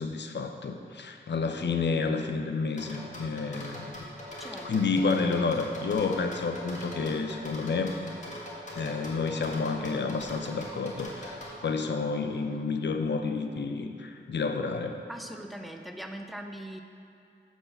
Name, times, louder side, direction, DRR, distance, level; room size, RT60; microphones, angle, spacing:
voice 1, 0.0-3.9 4.6-7.9 8.8-15.0, left 4 dB, 65° left, 6 dB, 0.6 m, -30 dB
sound 1, 2.8-11.5, left 1 dB, 40° left, 1.9 m, -41 dB
voice 2, 4.4-4.8 15.1-16.8, right 1 dB, ahead, 5 dB, 0.6 m, -41 dB
7.2 x 4.5 x 6.7 m, 2.5 s
cardioid pair, 45°, 20 cm